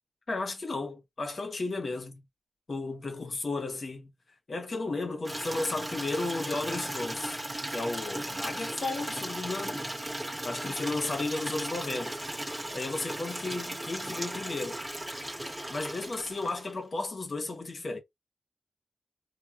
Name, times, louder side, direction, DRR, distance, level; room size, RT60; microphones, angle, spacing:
voice 1, 0.3-2.2 2.7-4.1 4.5-7.4 7.7-9.8 10.4-12.2 12.7-14.8 15.7-18.0, left 3 dB, 45° left, 0.7 m, -34 dB
Water tap faucet / Liquid, 5.2-16.8, right 1 dB, 25° right, 0.6 m, -36 dB
3.5 x 2.1 x 2.2 m
wide cardioid pair, 155°, 0 cm